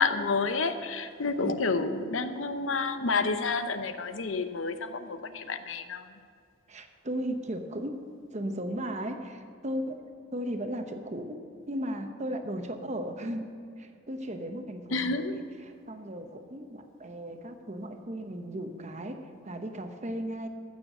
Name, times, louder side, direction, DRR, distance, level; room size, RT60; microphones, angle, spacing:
voice 1, 0.0-6.2 14.9-15.4, left 4 dB, 90° left, 10 dB, 0.8 m, -29 dB
voice 2, 6.7-8.0 8.3-10.0 10.3-11.4 11.7-13.5 13.8-20.5, equal, 35° right, 6 dB, 1.0 m, -36 dB
15.0 x 6.8 x 6.6 m, 2.4 s
head